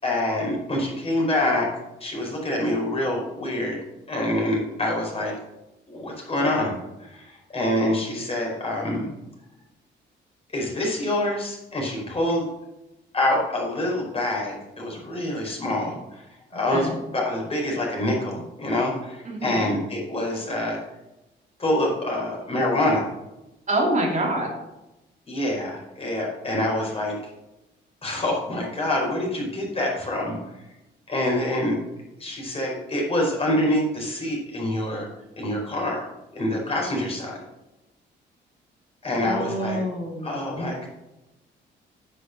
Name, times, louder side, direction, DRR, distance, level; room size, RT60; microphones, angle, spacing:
voice 1, 0.0-1.7 2.0-3.8 4.1-5.4 5.9-6.7 7.0-9.1 10.5-12.5 13.1-16.2 16.5-20.8 21.6-23.1 25.3-27.2 28.0-30.4 31.1-31.8 32.2-35.1 35.3-36.1 36.3-37.4 39.0-39.8 40.2-40.9, left 1 dB, 30° left, -1 dB, 4.8 m, -26 dB
voice 2, 19.2-19.6 23.7-24.5 39.2-40.4, right 1 dB, 40° right, -1 dB, 2.9 m, -26 dB
9.9 x 6.6 x 6.5 m, 0.95 s
cardioid pair, 90°, 20 cm